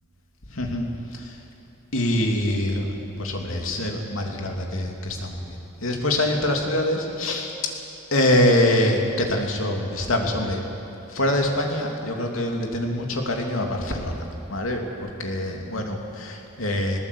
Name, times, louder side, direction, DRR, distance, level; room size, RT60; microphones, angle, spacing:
voice 1, 0.5-1.4 1.9-2.9 3.2-7.7 8.1-10.6 11.1-17.0, left 1 dB, 80° left, 2 dB, 2.9 m, -24 dB
20.0 x 18.5 x 8.3 m, 2.9 s
head